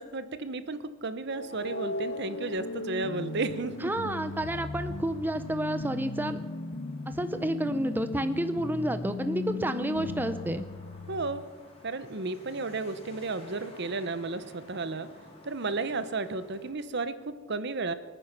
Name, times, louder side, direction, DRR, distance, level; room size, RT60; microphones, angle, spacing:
voice 1, 0.0-3.9 11.1-11.4 11.8-15.1 15.5-17.9, right 3 dB, 55° right, 12 dB, 0.9 m, -33 dB
sound 1, 1.3-11.4, left 2 dB, 70° left, 1.1 m, -37 dB
sound 2, 1.5-16.7, left 1 dB, 30° left, 3.2 m, -54 dB
voice 2, 3.8-6.4 7.1-10.6, right 1 dB, 10° right, 10 dB, 0.6 m, -30 dB
25.5 x 9.3 x 6.0 m, 1.4 s
head